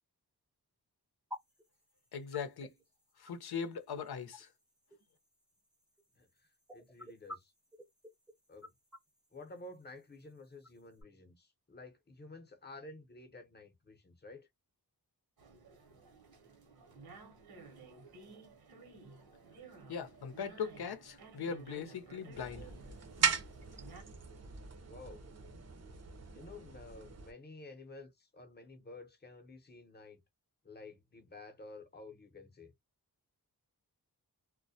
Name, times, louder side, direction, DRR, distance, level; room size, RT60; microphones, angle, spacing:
sound 1, 1.3-11.0, left 1 dB, ahead, 0.6 m, -54 dB
voice 1, 2.1-2.7 3.2-4.5 19.9-22.7, left 6 dB, 75° left, 0.7 m, -40 dB
voice 2, 6.7-7.5 8.5-8.7 9.3-14.5 24.9-25.2 26.3-30.2 30.6-32.7, left 2 dB, 25° left, 0.8 m, -52 dB
sound 2, 15.4-24.0, right 4 dB, 70° right, 0.9 m, -55 dB
sound 3, 22.3-27.3, right 5 dB, 40° right, 0.6 m, -38 dB
2.2 x 2.1 x 2.6 m
wide cardioid pair, 80°, 38 cm